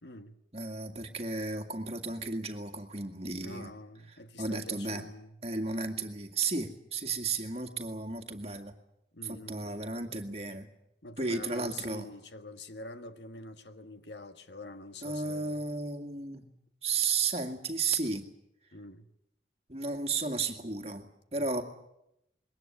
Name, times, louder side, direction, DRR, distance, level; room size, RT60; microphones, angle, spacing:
voice 1, 0.0-0.4 3.4-5.4 9.1-9.8 11.0-15.6 18.7-19.1 21.4-21.6, left 2 dB, 80° left, 1.5 m, -46 dB
voice 2, 0.5-3.7 4.4-5.1 5.4-8.7 9.2-10.7 11.2-12.1 15.0-16.4 16.8-18.3 19.7-21.6, right 4 dB, 35° right, 2.1 m, -33 dB
22.0 x 18.5 x 9.8 m
head